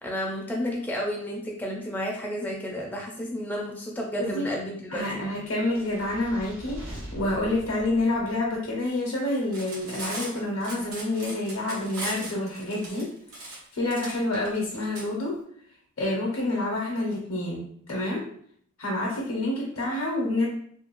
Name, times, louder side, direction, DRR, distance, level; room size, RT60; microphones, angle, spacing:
voice 1, 0.0-5.2, equal, 10° left, -2 dB, 0.3 m, -31 dB
voice 2, 4.9-13.1 13.4-15.4 16.0-18.2 18.8-20.5, left 1 dB, 65° left, -3 dB, 0.6 m, -28 dB
sound 1, 5.3-8.8, equal, 60° right, 0.9 m, -42 dB
Cutlery silverware, 9.4-15.0, right 2 dB, 85° right, 0.8 m, -38 dB
2.5 x 2.2 x 2.9 m, 0.63 s
head